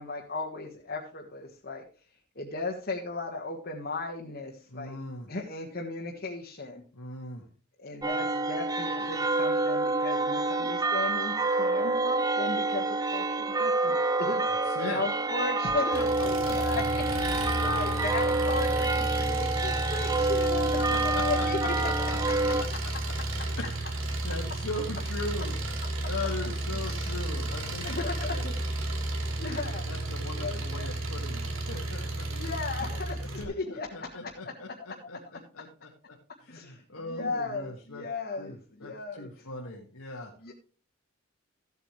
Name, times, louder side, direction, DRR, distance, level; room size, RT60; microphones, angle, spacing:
voice 1, 0.0-1.8 2.3-5.0 5.3-6.8 7.8-22.5 26.7-27.5 27.8-28.9 29.3-29.8 30.4-30.9 32.3-34.3 35.0-35.2 36.5-39.3 40.4-40.5, left 3 dB, 45° left, -1 dB, 1.5 m, -36 dB
voice 2, 4.7-5.3 6.9-7.5 14.4-15.0 16.0-16.6 17.5-17.8 20.9-22.2 22.6-22.9 23.3-23.8 24.2-25.6 26.1-28.4 29.4-29.5 29.9-32.5 33.2-35.9 36.4-38.1 38.4-40.3, left 2 dB, 85° left, -2 dB, 1.9 m, -39 dB
sound 1, 8.0-22.6, right 2 dB, 15° right, 0.6 m, -28 dB
Engine, 15.9-33.4, right 2 dB, 65° right, 2.2 m, -32 dB
15.0 x 8.3 x 3.2 m, 0.39 s
head